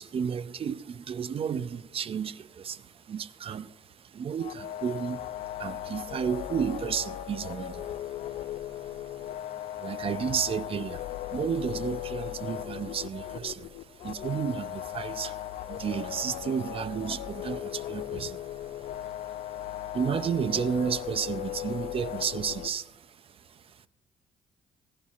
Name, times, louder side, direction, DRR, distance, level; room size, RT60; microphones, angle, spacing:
voice 1, 0.0-23.9, right 7 dB, 50° right, 0.6 m, -33 dB
sound 1, 4.4-22.7, left 12 dB, 70° left, 0.4 m, -37 dB
15.5 x 11.0 x 2.5 m
supercardioid pair, 70°, 12 cm